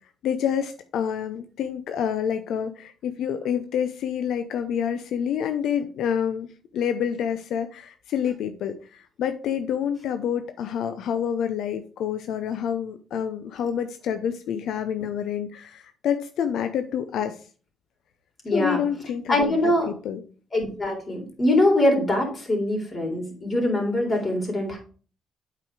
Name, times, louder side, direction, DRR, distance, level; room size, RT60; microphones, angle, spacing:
voice 1, 0.2-6.5 6.7-17.4 18.5-19.5 20.0-20.2, left 8 dB, 80° left, 9 dB, 0.6 m, -28 dB
voice 2, 18.4-18.8 19.3-19.9 20.5-24.8, left 1 dB, 30° left, 1 dB, 3.5 m, -23 dB
8.3 x 4.8 x 4.7 m, 0.39 s
cardioid pair, 90°, 0 cm